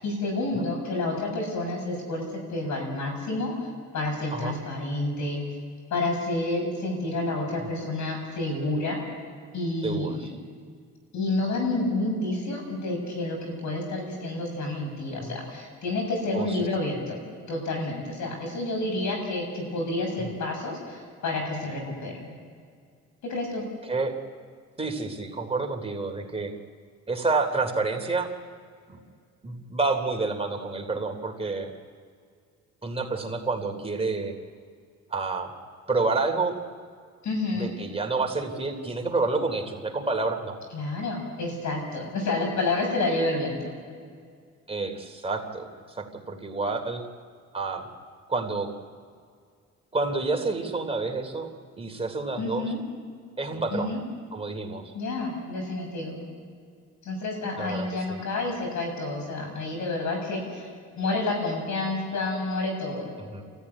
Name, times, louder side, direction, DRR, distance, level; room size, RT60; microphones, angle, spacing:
voice 1, 0.0-2.2 2.5-3.5 3.9-5.4 5.9-9.0 9.5-10.3 11.1-17.2 17.5-22.3 23.2-23.6 37.2-37.7 40.7-43.7 52.4-52.8 53.7-54.0 54.9-56.2 57.0-60.7 60.9-63.1, left 2 dB, 70° left, 2 dB, 7.9 m, -29 dB
voice 2, 9.8-10.3 15.2-15.4 16.3-16.6 20.2-20.3 23.9-24.1 24.8-26.5 27.1-28.3 28.9-29.0 29.4-31.7 32.8-34.3 35.1-35.5 35.9-36.6 37.5-40.6 44.7-47.0 47.5-47.9 48.3-48.7 49.9-51.5 51.8-52.7 53.4-53.9 54.3-54.9 57.6-58.2 63.2-63.4, right 3 dB, 20° right, 3 dB, 3.1 m, -29 dB
30.0 x 14.5 x 9.8 m, 2.1 s
cardioid pair, 90°, 30 cm